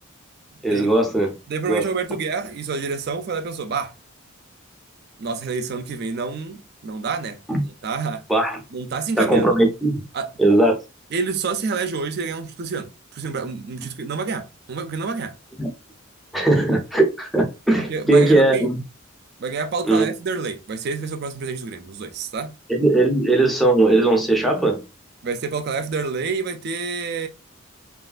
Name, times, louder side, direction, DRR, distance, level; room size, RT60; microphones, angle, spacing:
voice 1, 0.6-1.3 1.7-1.9 7.5-7.6 8.3-8.6 9.2-10.0 10.4-10.8 15.6-15.7 16.3-18.8 19.8-20.1 22.7-24.8, right 2 dB, ahead, 0.5 m, -18 dB
voice 2, 1.5-3.9 5.2-8.2 8.7-9.6 10.1-10.3 11.1-15.3 17.9-18.7 19.4-22.5 25.2-27.3, right 4 dB, 50° right, 0.4 m, -28 dB
3.1 x 2.4 x 2.4 m
head